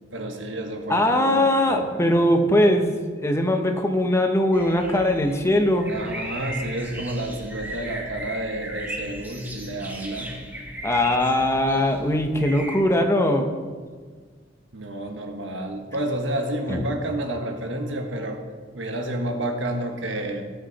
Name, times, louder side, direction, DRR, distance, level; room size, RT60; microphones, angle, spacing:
voice 1, 0.1-2.3 5.9-10.3 14.7-18.4 18.7-20.5, right 1 dB, 80° right, 4 dB, 1.4 m, -30 dB
voice 2, 0.9-5.9 10.8-13.5 16.7-16.8, left 1 dB, 15° left, 4 dB, 0.9 m, -21 dB
sound 1, 4.5-12.8, right 1 dB, 10° right, 1.4 m, -37 dB
18.5 x 6.4 x 4.1 m, 1.5 s
head